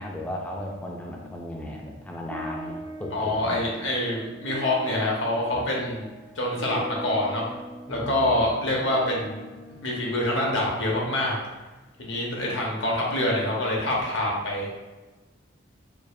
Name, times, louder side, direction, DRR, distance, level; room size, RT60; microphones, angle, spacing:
voice 1, 0.0-3.6 5.5-5.6 7.9-8.5, left 1 dB, 10° left, -1 dB, 0.3 m, -36 dB
sound 1, 2.3-11.0, equal, 85° right, 0.6 m, -41 dB
voice 2, 3.1-6.1 6.4-7.4 7.9-9.4 9.7-11.4 12.0-14.7, left 1 dB, 70° left, -2 dB, 0.9 m, -26 dB
4.7 x 2.4 x 2.4 m, 1.2 s
head